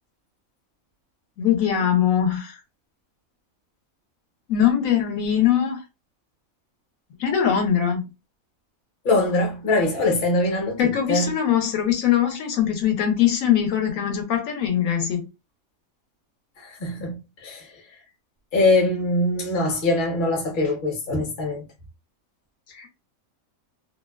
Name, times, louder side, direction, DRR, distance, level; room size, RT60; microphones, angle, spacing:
voice 1, 1.4-2.6 4.5-5.8 7.2-8.0 10.8-15.2 22.7-22.9, left 9 dB, 80° left, 1.0 m, -21 dB
voice 2, 9.0-10.8 11.1-11.3 16.6-17.2 17.4-17.7 18.5-21.7, left 2 dB, 45° left, 0.8 m, -22 dB
2.6 x 2.1 x 2.2 m
omnidirectional pair, 1.5 m